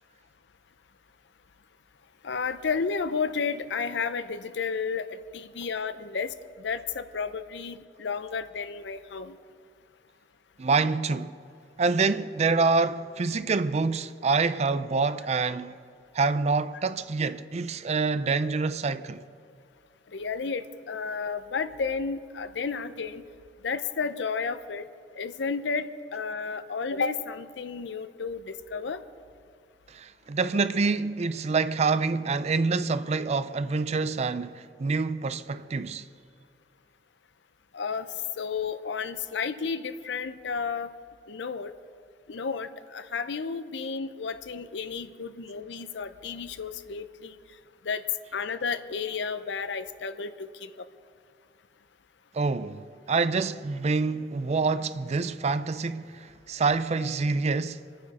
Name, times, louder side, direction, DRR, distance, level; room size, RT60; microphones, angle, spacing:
voice 1, 2.2-9.4 20.1-23.2 23.6-24.9 25.1-29.0 37.7-38.1 38.4-40.9 41.3-41.7 42.3-47.4 47.8-48.0 48.3-50.7, left 5 dB, 75° left, 0.6 m, -32 dB
voice 2, 10.6-11.4 11.8-15.7 16.1-19.2 29.9-36.1 52.3-57.8, right 4 dB, 35° right, 0.4 m, -26 dB
24.5 x 9.6 x 4.2 m
head